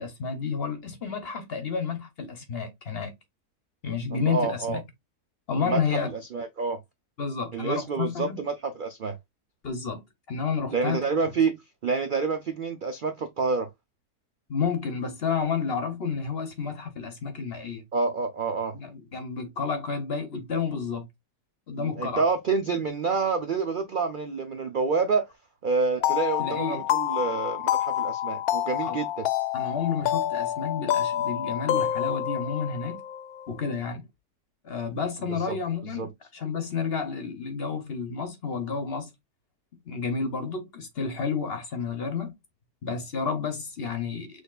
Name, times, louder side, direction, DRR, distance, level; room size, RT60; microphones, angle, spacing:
voice 1, 0.0-3.1 3.8-4.8 5.5-6.1 7.2-8.4 9.6-11.0 14.5-17.8 18.7-21.1 21.7-22.2 26.4-26.8 28.8-29.0 29.5-33.0 33.5-34.1 34.6-39.1 39.9-42.3 42.8-44.4, left 5 dB, 50° left, 0.9 m, -30 dB
voice 2, 4.1-4.8 5.6-6.0 6.3-6.8 7.5-9.2 10.7-13.7 17.9-18.7 21.7-25.3 25.6-29.3 35.4-35.6 35.9-36.1, right 4 dB, 65° right, 0.5 m, -28 dB
sound 1, 26.0-33.5, left 11 dB, 75° left, 1.0 m, -28 dB
6.2 x 3.3 x 2.3 m
omnidirectional pair, 1.6 m